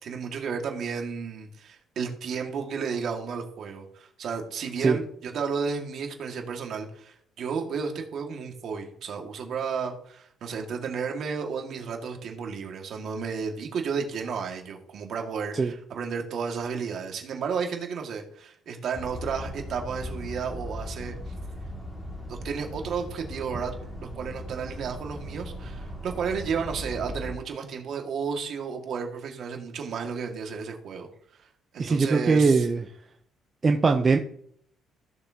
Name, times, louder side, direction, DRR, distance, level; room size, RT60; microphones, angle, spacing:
voice 1, 0.0-21.3 22.3-23.7 24.0-31.1 31.4-31.5 31.7-32.7, right 6 dB, 55° right, 2 dB, 2.0 m, -32 dB
sound 1, 18.9-27.3, equal, 20° left, 2.2 m, -38 dB
voice 2, 31.8-32.8 33.6-34.2, right 4 dB, 30° right, 4 dB, 0.7 m, -21 dB
15.0 x 6.9 x 2.9 m, 0.65 s
cardioid pair, 115°, 0 cm